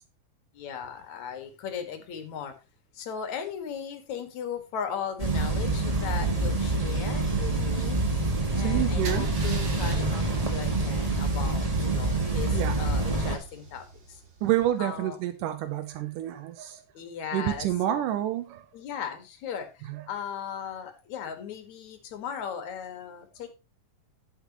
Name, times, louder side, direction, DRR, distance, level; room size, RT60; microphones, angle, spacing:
voice 1, 0.5-2.6 2.9-8.0 8.5-14.2 14.8-15.2 16.9-18.0 18.7-23.5, left 8 dB, 65° left, 3.0 m, -37 dB
sound 1, 5.2-13.4, right 2 dB, 20° right, 1.2 m, -26 dB
voice 2, 8.6-9.3 12.5-12.8 14.4-16.8 17.3-18.7 19.9-20.0, right 12 dB, 80° right, 2.4 m, -28 dB
Car / Engine starting / Idling, 9.0-14.9, right 3 dB, 40° right, 2.2 m, -42 dB
11.5 x 8.9 x 3.0 m
omnidirectional pair, 3.8 m